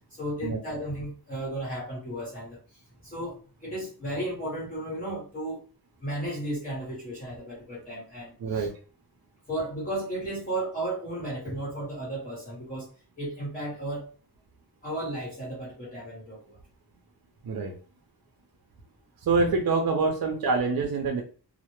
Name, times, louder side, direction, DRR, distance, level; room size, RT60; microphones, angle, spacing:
voice 1, 0.1-5.6 6.0-8.7 9.5-12.9 13.2-14.1 14.8-16.6, right 1 dB, 20° left, -7 dB, 1.0 m, -34 dB
voice 2, 19.2-21.2, right 4 dB, 65° right, 2 dB, 0.6 m, -25 dB
2.1 x 2.1 x 3.0 m, 0.38 s
wide cardioid pair, 85°, 39 cm